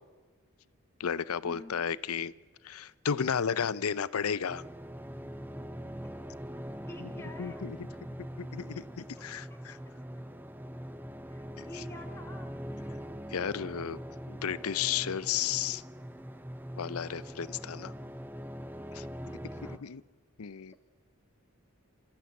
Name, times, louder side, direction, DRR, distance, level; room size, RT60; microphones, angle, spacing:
voice 1, 1.0-2.3 2.6-4.6 7.0-7.1 7.4-7.8 8.4-9.8 11.6-11.8 13.3-14.0 14.3-15.8 16.8-17.9 18.9-19.1 19.6-20.0 20.4-20.7, left 7 dB, 90° left, 18 dB, 0.6 m, -33 dB
sound 1, 4.5-19.8, equal, 10° right, 0.6 m, -42 dB
voice 2, 6.8-7.7 8.7-8.8 11.3-12.5 19.3-19.8 20.7-20.8, left 1 dB, 10° left, 2 dB, 2.0 m, -49 dB
27.0 x 14.0 x 8.2 m, 1.4 s
head